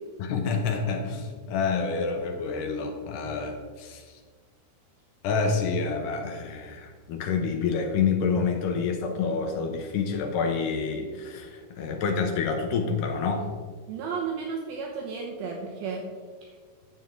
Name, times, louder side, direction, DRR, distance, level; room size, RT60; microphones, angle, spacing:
voice 1, 0.2-4.1 5.2-13.5, left 5 dB, 80° left, 4 dB, 2.0 m, -28 dB
voice 2, 13.9-16.0, right 5 dB, 80° right, -1 dB, 2.7 m, -33 dB
9.9 x 7.3 x 3.7 m, 1.5 s
omnidirectional pair, 4.4 m